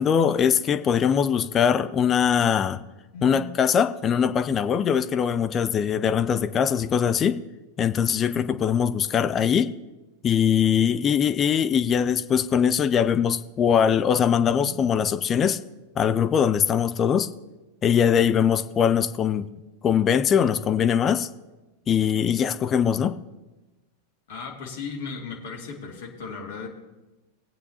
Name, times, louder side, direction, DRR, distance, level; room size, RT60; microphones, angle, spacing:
voice 1, 0.0-2.8 3.2-7.4 7.8-9.7 10.2-15.6 16.0-17.3 17.8-19.5 19.8-21.3 21.9-23.1, left 8 dB, 25° left, 0.4 m, -22 dB
voice 2, 3.1-3.6 14.6-14.8 24.3-26.7, left 4 dB, 55° left, 2.1 m, -36 dB
20.0 x 8.4 x 2.8 m
figure-of-eight pair, 90°, 0 cm